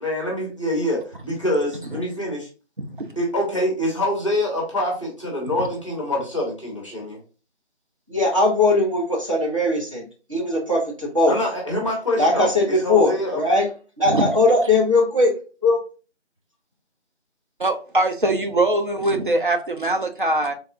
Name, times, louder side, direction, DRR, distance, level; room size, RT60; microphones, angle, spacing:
voice 1, 0.0-2.5 3.2-7.2 11.3-13.4, left 1 dB, 25° left, 0.8 m, -25 dB
voice 2, 2.8-3.1 14.0-14.3 17.6-20.5, right 2 dB, 50° right, 0.5 m, -22 dB
voice 3, 8.1-11.4 12.2-13.7 14.0-15.3 15.6-15.8, left 2 dB, 30° right, 0.8 m, -19 dB
3.4 x 2.2 x 2.5 m
figure-of-eight pair, 165°, 34 cm